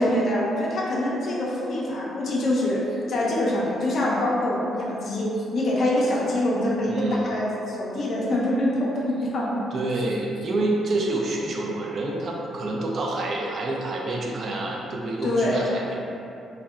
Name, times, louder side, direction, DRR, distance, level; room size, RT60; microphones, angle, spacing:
voice 1, 0.0-2.8 3.1-9.6 15.2-15.7, left 1 dB, 60° left, -5 dB, 0.4 m, -25 dB
voice 2, 6.9-7.3 9.7-15.9, right 2 dB, 50° right, -1 dB, 0.4 m, -27 dB
2.6 x 2.1 x 2.3 m, 2.7 s
cardioid pair, 90°, 0 cm